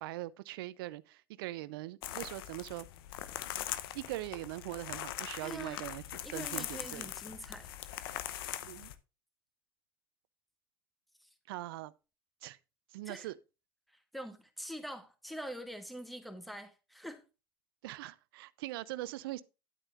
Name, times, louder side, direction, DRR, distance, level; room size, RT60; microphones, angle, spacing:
voice 1, 0.0-2.9 3.9-6.0 6.3-7.1 8.6-8.9 11.5-11.9 12.4-12.6 12.9-13.4 17.8-19.4, right 17 dB, 75° right, 0.6 m, -41 dB
sound 1, 2.0-9.0, left 13 dB, 80° left, 0.8 m, -41 dB
voice 2, 5.4-5.9 6.2-7.7 11.2-11.3 13.1-13.3 13.9-17.2, equal, ahead, 2.1 m, -45 dB
11.0 x 8.9 x 2.5 m
hypercardioid pair, 75°, 12 cm